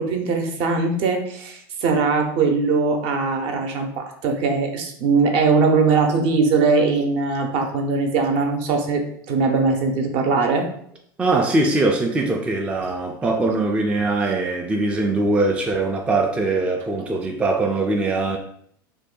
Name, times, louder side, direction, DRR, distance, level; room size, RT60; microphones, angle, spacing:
voice 1, 0.0-10.7 17.0-17.1, right 4 dB, 50° right, 0.6 m, -21 dB
voice 2, 11.2-18.4, right 2 dB, 10° right, 0.3 m, -21 dB
2.6 x 2.2 x 3.7 m
hypercardioid pair, 110°, 12 cm